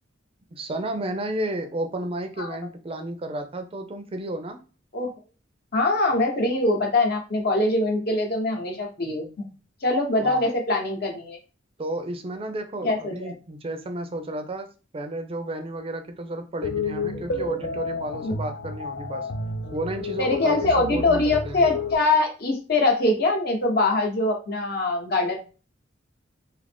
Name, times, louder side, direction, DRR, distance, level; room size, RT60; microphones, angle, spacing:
voice 1, 0.5-4.6 10.2-10.4 11.8-14.7 14.9-19.3 19.7-21.6, right 1 dB, 30° right, 7 dB, 0.4 m, -32 dB
voice 2, 5.7-9.4 9.8-11.4 12.8-13.3 18.2-18.3 20.2-25.4, left 2 dB, 55° left, 2 dB, 0.9 m, -23 dB
sound 1, 16.6-22.0, left 3 dB, 85° left, 0.5 m, -31 dB
2.8 x 2.5 x 3.4 m, 0.34 s
head